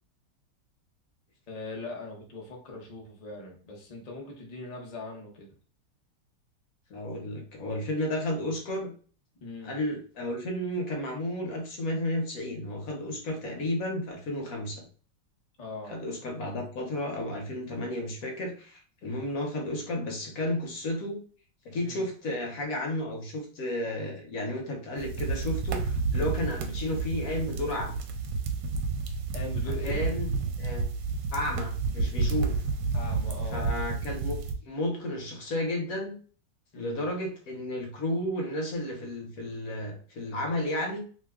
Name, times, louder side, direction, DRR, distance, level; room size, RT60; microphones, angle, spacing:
voice 1, 1.5-5.5 9.4-9.8 15.6-15.9 21.8-22.0 29.3-30.0 32.9-33.7 36.7-37.0, left 3 dB, 75° left, 0 dB, 0.3 m, -40 dB
voice 2, 6.9-8.9 9.6-14.9 15.9-21.2 21.6-28.0 29.8-30.3 30.6-30.9 31.3-32.6 33.5-34.4 34.6-36.1 36.7-41.0, left 1 dB, 60° left, 1 dB, 1.2 m, -32 dB
sound 1, 25.0-34.5, right 4 dB, 80° right, 1.2 m, -30 dB
3.0 x 2.2 x 3.5 m, 0.41 s
omnidirectional pair, 1.9 m